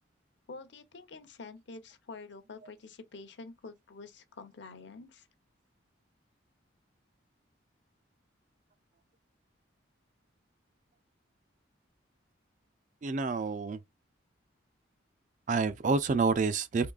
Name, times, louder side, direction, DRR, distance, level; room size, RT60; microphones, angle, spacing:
voice 1, 0.5-5.3, left 3 dB, 65° left, 0.6 m, -47 dB
voice 2, 13.0-13.8 15.5-16.9, right 4 dB, 40° right, 0.3 m, -28 dB
3.6 x 3.1 x 2.3 m
head